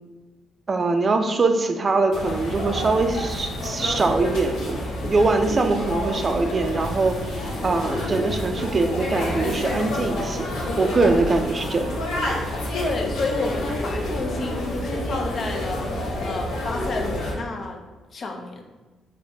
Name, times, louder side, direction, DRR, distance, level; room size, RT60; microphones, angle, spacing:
voice 1, 0.7-10.5 10.8-12.0, right 3 dB, 35° right, 6 dB, 0.4 m, -23 dB
sound 1, 2.1-17.3, left 1 dB, 90° left, 0.8 m, -28 dB
voice 2, 12.7-17.8 18.1-18.6, left 3 dB, 50° left, 3 dB, 0.5 m, -30 dB
5.0 x 2.1 x 2.6 m, 1.2 s
cardioid pair, 90°, 0 cm